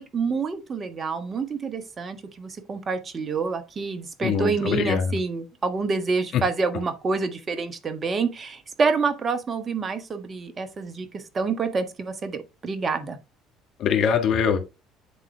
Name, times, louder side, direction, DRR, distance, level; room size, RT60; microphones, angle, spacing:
voice 1, 0.0-13.2, right 4 dB, 35° right, 1.4 m, -27 dB
voice 2, 4.2-5.2 13.8-14.6, left 7 dB, 60° left, 1.6 m, -23 dB
9.9 x 3.9 x 3.4 m
hypercardioid pair, 65°, 0 cm